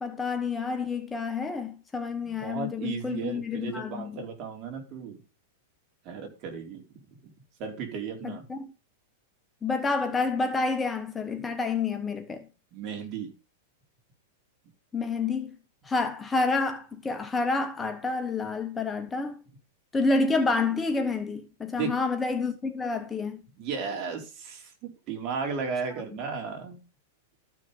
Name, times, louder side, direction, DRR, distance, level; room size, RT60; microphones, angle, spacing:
voice 1, 0.0-4.2 8.2-8.7 9.6-12.5 14.9-15.6 15.8-19.4 19.9-23.4, left 3 dB, 15° left, 1.1 m, -29 dB
voice 2, 2.2-5.2 6.0-7.3 7.6-8.4 12.7-13.3 21.8-21.9 23.6-26.8, right 6 dB, 35° right, 4.6 m, -35 dB
13.5 x 6.3 x 5.4 m
supercardioid pair, 140°, 0 cm